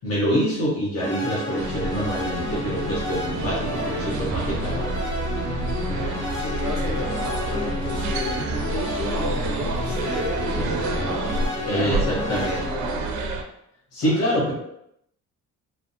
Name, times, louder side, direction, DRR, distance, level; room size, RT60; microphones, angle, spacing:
voice 1, 0.0-4.9 11.6-12.6 13.9-14.5, equal, 50° left, -6 dB, 1.1 m, -25 dB
sound 1, 1.0-12.7, left 1 dB, 15° left, 0.8 m, -30 dB
sound 2, 1.6-13.4, right 2 dB, 75° right, 0.5 m, -29 dB
voice 2, 5.9-13.3 14.0-14.4, left 2 dB, 65° left, -5 dB, 1.2 m, -34 dB
3.2 x 2.0 x 2.7 m, 0.78 s
cardioid pair, 90°, 30 cm